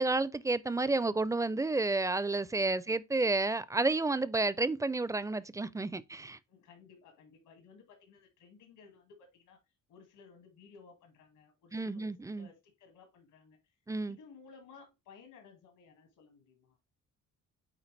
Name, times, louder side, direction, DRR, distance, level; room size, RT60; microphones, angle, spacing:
voice 1, 0.0-6.4 11.7-12.5 13.9-14.2, right 3 dB, 10° right, 0.4 m, -31 dB
voice 2, 6.5-9.6 9.9-13.7 14.0-16.8, left 5 dB, 85° left, 2.3 m, -57 dB
9.1 x 3.8 x 3.3 m
cardioid pair, 90°, 30 cm